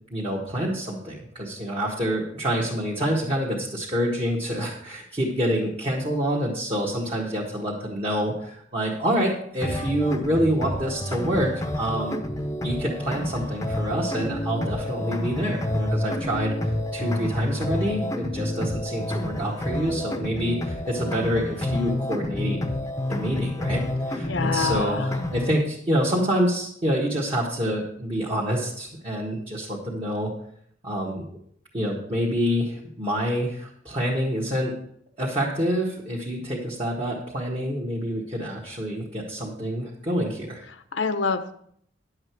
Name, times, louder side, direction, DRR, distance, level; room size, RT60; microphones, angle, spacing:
voice 1, 0.1-12.2 12.6-22.6 23.1-30.3 30.8-31.2 31.7-34.7 35.2-40.6, equal, 30° right, -6 dB, 1.5 m, -27 dB
sound 1, 9.6-25.6, left 1 dB, 15° left, 0.7 m, -29 dB
voice 2, 24.3-25.1 40.7-41.5, left 4 dB, 70° left, 9 dB, 0.8 m, -27 dB
10.5 x 7.6 x 4.6 m, 0.66 s
head